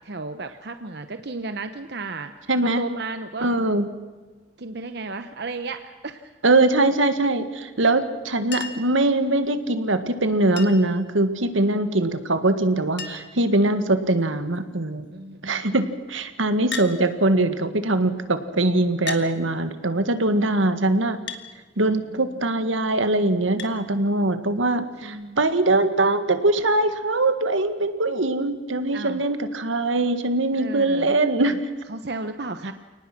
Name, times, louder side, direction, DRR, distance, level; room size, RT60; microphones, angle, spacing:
voice 1, 0.0-2.3 2.6-3.5 4.6-6.3 11.5-11.8 15.1-15.6 21.8-22.4 25.0-25.4 28.9-29.2 30.5-31.2 31.5-31.6 31.9-32.7, right 3 dB, 55° right, 9 dB, 0.9 m, -34 dB
voice 2, 2.5-2.8 3.4-3.9 6.4-15.1 15.4-21.2 21.8-31.6, right 2 dB, 85° right, 10 dB, 1.7 m, -22 dB
Chink clink, 8.5-9.0 10.6-11.0 12.3-12.4 12.6-12.7 13.0-13.4 14.2-14.6 16.7-17.0 18.0-18.1 19.1-19.3 21.3-21.5 23.6-23.8 25.2-25.3, left 5 dB, 60° left, 1.8 m, -34 dB
29.5 x 19.0 x 6.0 m, 1.3 s
head